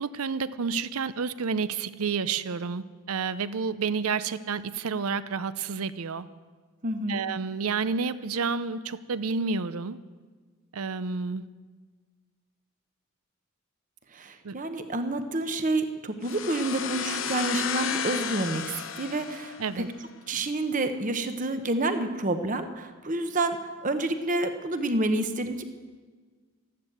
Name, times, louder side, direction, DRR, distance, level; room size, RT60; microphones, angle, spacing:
voice 1, 0.0-6.3 7.1-10.0 10.7-11.5 14.4-14.6 19.6-19.9, right 5 dB, 80° right, 15 dB, 0.6 m, -30 dB
voice 2, 6.8-7.2 14.2-18.6 19.0-19.8 20.3-23.6 23.8-25.6, right 2 dB, 35° right, 8 dB, 0.9 m, -28 dB
sound 1, 16.2-20.0, left 7 dB, 60° left, 0.9 m, -33 dB
13.5 x 12.0 x 7.8 m, 1.5 s
head